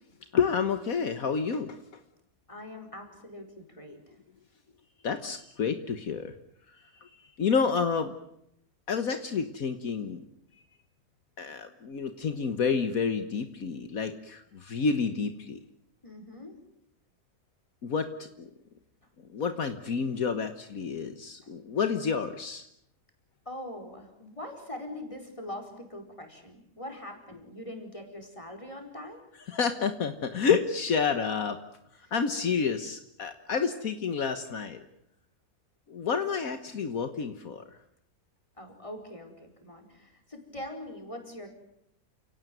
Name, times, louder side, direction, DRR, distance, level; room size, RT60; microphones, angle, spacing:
voice 1, 0.3-1.8 5.0-6.3 7.4-8.1 8.9-10.2 11.4-15.6 17.8-18.5 19.3-22.6 29.5-31.6 32.1-34.8 35.9-37.6, left 6 dB, 70° left, 9 dB, 1.7 m, -29 dB
voice 2, 2.5-4.2 16.0-16.6 23.4-29.2 32.0-32.1 38.6-41.5, left 1 dB, 20° left, 3 dB, 4.8 m, -42 dB
29.0 x 18.0 x 9.3 m, 0.76 s
omnidirectional pair, 1.5 m